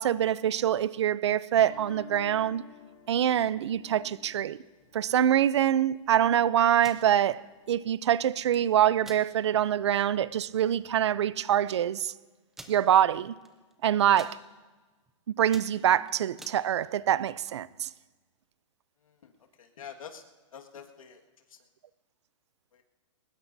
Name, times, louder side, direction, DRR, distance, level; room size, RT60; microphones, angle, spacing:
voice 1, 0.0-2.6 3.1-4.6 4.9-12.1 12.7-13.3 13.8-14.4 15.3-17.9, right 10 dB, 55° right, 0.5 m, -25 dB
sound 1, 1.5-6.5, left 7 dB, 35° left, 5.2 m, -52 dB
sound 2, 6.8-7.1 8.3-8.6 9.0-9.2 9.7-9.8 10.2-10.4 11.2-11.3 11.5-11.6 12.5-12.8 13.4-13.7 14.0-14.4 14.9-15.1 15.4-16.6, right 2 dB, ahead, 0.4 m, -48 dB
voice 2, 19.6-20.2 20.5-21.2 21.5-21.6 22.7-22.8, left 7 dB, 85° left, 1.8 m, -46 dB
21.5 x 20.0 x 2.7 m
hypercardioid pair, 175°, 17 cm